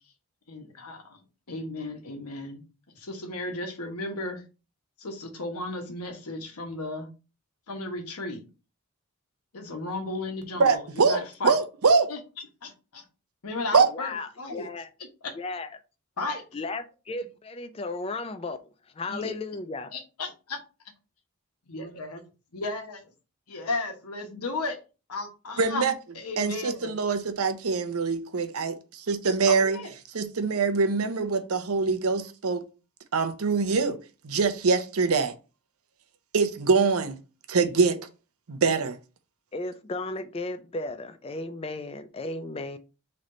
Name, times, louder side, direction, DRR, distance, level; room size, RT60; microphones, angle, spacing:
voice 1, 0.5-1.2 1.5-2.6 2.9-4.4 5.0-7.1 7.7-8.4 9.5-11.6 12.1-12.2 12.6-13.0 13.4-14.6 15.2-15.4 16.2-16.4 19.1-19.3 19.9-20.6 21.7-22.2 22.5-23.0 23.5-24.8 25.1-25.9 26.1-26.9 29.5-29.9, left 2 dB, 90° left, 1.2 m, -34 dB
voice 2, 10.6-12.1 13.7-13.9 25.6-25.9 26.4-29.8 30.1-32.6 33.1-34.0 34.2-35.3 36.3-37.2 37.5-38.0 38.5-39.0, right 4 dB, 80° right, 0.7 m, -24 dB
voice 3, 13.9-14.9 15.3-15.7 16.5-19.9 39.5-42.8, left 2 dB, 25° left, 0.3 m, -35 dB
3.9 x 3.2 x 4.1 m
head